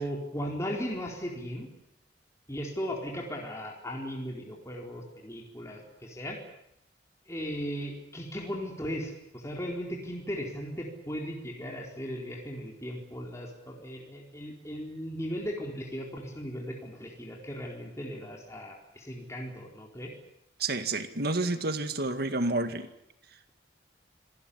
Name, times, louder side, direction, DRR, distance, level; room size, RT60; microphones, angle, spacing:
voice 1, 0.0-1.7 2.5-6.4 7.3-20.1, equal, 15° left, -1 dB, 4.3 m, -37 dB
voice 2, 20.6-22.9, right 2 dB, 60° right, 9 dB, 2.1 m, -29 dB
26.0 x 18.5 x 8.6 m, 0.81 s
head